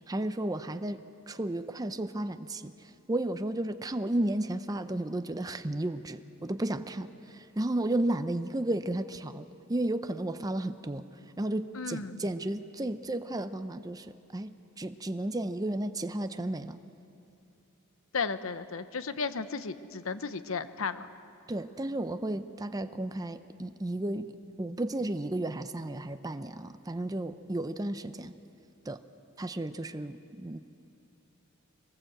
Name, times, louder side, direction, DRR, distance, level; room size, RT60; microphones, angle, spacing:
voice 1, 0.1-1.0 1.3-11.1 11.4-16.8 21.5-28.4 28.9-29.0 29.4-30.6, right 1 dB, 15° right, 10 dB, 0.5 m, -33 dB
voice 2, 11.7-12.2 18.1-21.1, left 5 dB, 65° left, 12 dB, 0.8 m, -34 dB
23.0 x 19.0 x 7.9 m, 2.6 s
head